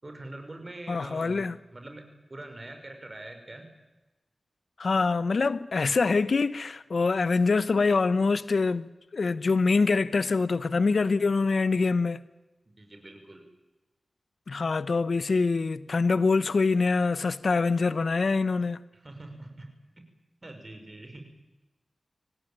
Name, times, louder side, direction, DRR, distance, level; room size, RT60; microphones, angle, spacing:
voice 1, 0.0-1.5 1.7-3.7 12.8-13.5 18.9-19.7 20.0-20.1 20.4-21.2, right 2 dB, 35° right, 5.8 m, -44 dB
voice 2, 0.9-1.6 4.8-12.2 14.5-18.8, left 4 dB, 70° left, 0.9 m, -25 dB
25.5 x 17.5 x 8.9 m
cardioid pair, 50°, 0 cm